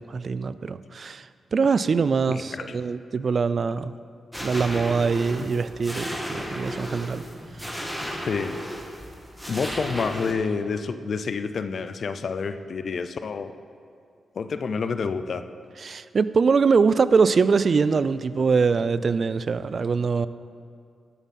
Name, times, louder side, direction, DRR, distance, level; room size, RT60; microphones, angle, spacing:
voice 1, 0.0-3.9 4.4-7.2 7.6-7.7 15.8-20.3, right 5 dB, 55° right, 15 dB, 0.3 m, -23 dB
voice 2, 2.3-2.7 8.0-8.6 9.5-13.5 14.3-15.4, left 5 dB, 60° left, 10 dB, 0.4 m, -29 dB
sound 1, 4.3-10.3, equal, ahead, 1.5 m, -34 dB
12.5 x 7.1 x 4.2 m, 2.3 s
cardioid pair, 60°, 0 cm